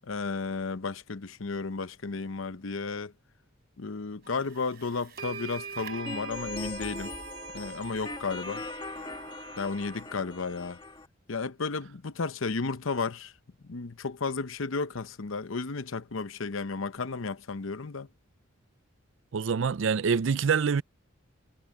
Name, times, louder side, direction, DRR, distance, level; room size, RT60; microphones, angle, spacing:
voice 1, 0.0-3.1 3.8-7.1 7.5-8.6 9.6-10.8 11.3-13.3 13.6-18.1, left 4 dB, 75° left, 0.8 m, -33 dB
sound 1, 4.6-4.7 5.2-10.0, right 5 dB, 50° right, 3.9 m, -42 dB
sound 2, 6.1-11.1, left 3 dB, 25° left, 2.4 m, -40 dB
voice 2, 19.3-20.8, right 6 dB, 65° right, 0.5 m, -25 dB
head